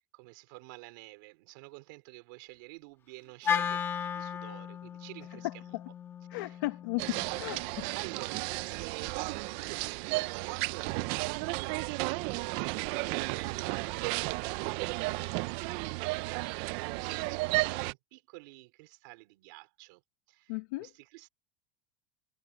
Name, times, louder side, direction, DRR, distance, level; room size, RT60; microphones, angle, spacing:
voice 1, 0.1-5.7 6.3-6.6 7.9-20.0 20.3-20.5 20.8-21.3, right 26 dB, 75° right, 3.7 m, -48 dB
Wind instrument woodwind instrument, 3.4-7.7, left 7 dB, 25° left, 1.2 m, -35 dB
voice 2, 5.4-5.8 6.3-7.9 20.5-20.9, left 21 dB, 90° left, 1.0 m, -35 dB
sound 1, 7.0-17.9, right 24 dB, 60° right, 0.5 m, -33 dB
cardioid pair, 160°, 10 cm